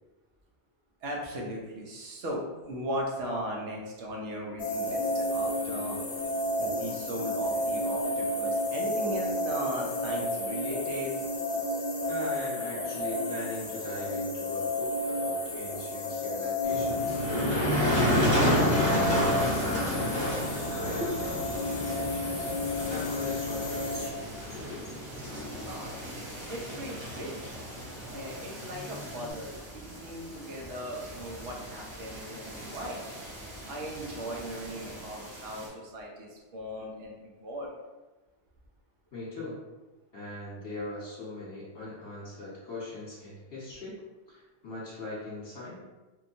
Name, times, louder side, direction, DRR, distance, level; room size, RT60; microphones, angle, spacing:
voice 1, 1.0-6.0 6.6-11.1 20.8-22.1 25.3-26.0 26.4-27.3 28.1-33.0 33.7-37.7, equal, 70° right, -1 dB, 0.9 m, -38 dB
sound 1, 4.6-24.1, left 1 dB, 60° left, 0.3 m, -32 dB
voice 2, 12.1-17.2 18.4-22.5 22.9-24.3 39.1-39.6 40.1-44.0 44.3-45.8, left 2 dB, 20° left, -8 dB, 1.1 m, -40 dB
Motor vehicle (road), 16.6-29.3, equal, 5° left, 1.0 m, -30 dB
sound 2, 19.0-35.7, right 1 dB, 30° right, 0.4 m, -44 dB
2.8 x 2.2 x 2.6 m, 1.2 s
omnidirectional pair, 1.2 m